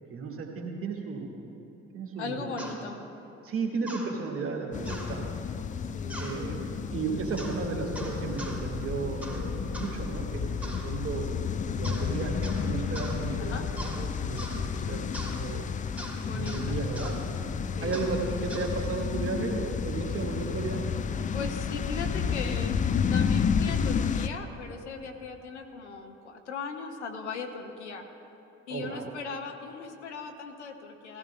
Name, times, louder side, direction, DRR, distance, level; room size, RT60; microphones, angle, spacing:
voice 1, 0.1-1.3 1.9-2.7 3.4-5.3 6.2-11.3 11.8-15.7 16.2-17.3 17.8-21.2 22.4-22.7 28.7-29.1, right 4 dB, 40° right, 0 dB, 2.1 m, -34 dB
voice 2, 2.2-3.0 5.9-6.2 13.4-13.7 16.3-16.8 17.8-18.1 21.3-22.7 23.1-28.0 28.7-31.2, left 5 dB, 80° left, 5 dB, 0.8 m, -38 dB
sound 1, 2.6-2.8 3.9-4.1 4.9-5.1 6.1-6.4 7.4-7.6 8.0-8.6 9.2-9.4 9.7-9.9 10.6-10.9 11.8-12.1 12.4-12.7 13.0-13.2 13.8-14.0 14.4-14.6 15.1-15.4 16.0-16.2 16.5-16.6 17.0-17.1 17.9-18.1 18.5-18.7, right 1 dB, 5° right, 2.9 m, -41 dB
sound 2, 4.7-24.3, left 6 dB, 25° left, 0.4 m, -31 dB
18.0 x 15.0 x 2.3 m, 2.9 s
figure-of-eight pair, 50°, 34 cm